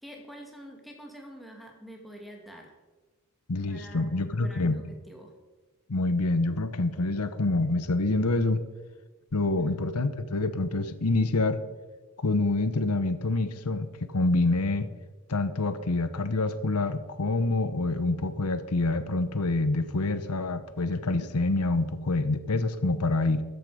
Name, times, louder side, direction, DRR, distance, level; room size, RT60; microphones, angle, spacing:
voice 1, 0.0-2.7 3.7-5.3 9.6-9.8, equal, ahead, 0 dB, 2.3 m, -46 dB
voice 2, 3.5-4.8 5.9-8.6 9.3-11.6 12.2-14.9 15.3-23.4, left 2 dB, 85° left, 12 dB, 0.9 m, -26 dB
14.0 x 10.0 x 5.0 m, 1.3 s
head